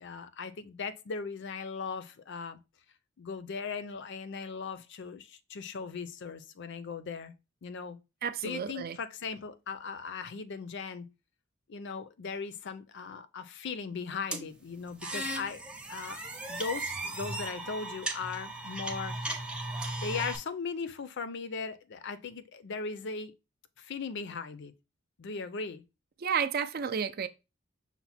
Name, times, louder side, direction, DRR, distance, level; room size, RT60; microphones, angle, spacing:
voice 1, 0.0-2.6 3.2-7.3 7.6-8.0 8.4-11.1 11.7-15.6 15.9-16.2 16.5-19.2 20.0-23.3 23.8-24.7 25.2-25.8, left 5 dB, 55° left, 0.5 m, -38 dB
voice 2, 8.2-9.0 26.2-27.3, right 7 dB, 45° right, 0.4 m, -31 dB
sound 1, 14.3-20.4, right 2 dB, 5° right, 0.6 m, -37 dB
5.8 x 2.1 x 4.1 m
head